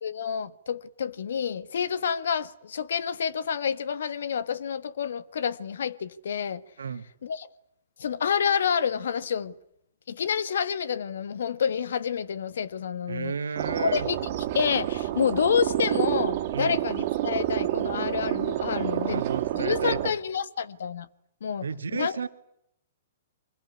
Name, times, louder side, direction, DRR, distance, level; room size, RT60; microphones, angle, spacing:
voice 1, 0.0-6.6 7.2-7.5 8.0-9.5 10.1-13.3 13.7-14.2 14.5-19.2 19.5-21.1 21.4-21.6 21.9-22.2, left 7 dB, 70° left, 1.4 m, -28 dB
voice 2, 13.1-14.1 16.5-16.8 18.7-20.2 21.6-22.3, right 6 dB, 80° right, 1.9 m, -33 dB
sound 1, 13.6-20.1, right 13 dB, 50° right, 2.5 m, -28 dB
25.0 x 20.5 x 9.8 m
hypercardioid pair, 125°, 0 cm